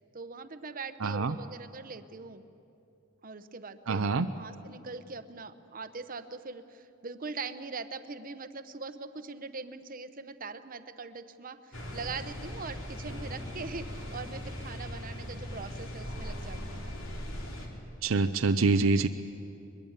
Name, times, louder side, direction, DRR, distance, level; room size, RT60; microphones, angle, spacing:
voice 1, 0.1-2.4 3.2-16.8, right 4 dB, 45° right, 11 dB, 0.9 m, -42 dB
voice 2, 1.0-1.3 3.9-4.3 18.0-19.1, right 3 dB, 70° right, 8 dB, 0.6 m, -25 dB
sound 1, 11.7-17.7, equal, 70° left, 3.4 m, -39 dB
22.0 x 21.5 x 8.9 m, 2.8 s
head